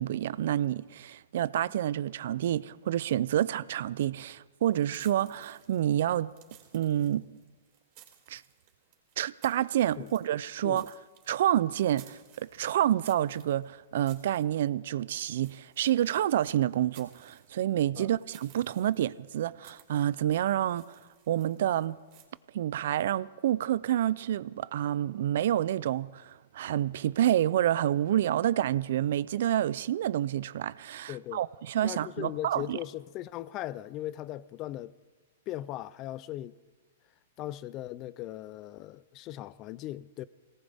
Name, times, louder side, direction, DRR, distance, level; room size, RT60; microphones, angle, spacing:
voice 1, 0.0-6.3 6.7-7.3 8.3-8.4 9.2-10.9 11.3-21.0 21.3-22.0 22.5-32.8, right 11 dB, 65° right, 0.5 m, -28 dB
sound 1, 4.6-22.3, right 12 dB, 45° right, 3.6 m, -59 dB
voice 2, 31.1-31.4 31.8-34.9 35.5-36.5 37.4-40.3, left 14 dB, 35° left, 0.5 m, -38 dB
21.5 x 18.5 x 3.6 m
hypercardioid pair, 130°, 0 cm